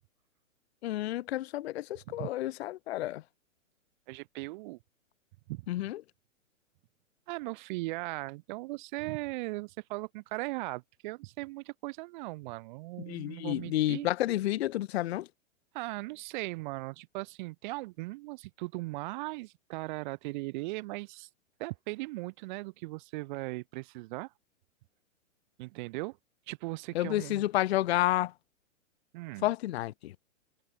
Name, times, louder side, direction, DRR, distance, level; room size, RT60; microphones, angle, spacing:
voice 1, 0.8-3.2 5.7-6.0 13.1-15.3 26.9-28.3 29.4-30.1, left 15 dB, 50° left, 0.6 m, -30 dB
voice 2, 4.1-4.8 5.5-5.9 7.3-14.1 15.7-21.3 21.6-24.3 25.6-26.2 26.5-27.4 29.1-29.5, right 22 dB, 35° right, 1.2 m, -38 dB
hypercardioid pair, 130°, 40 cm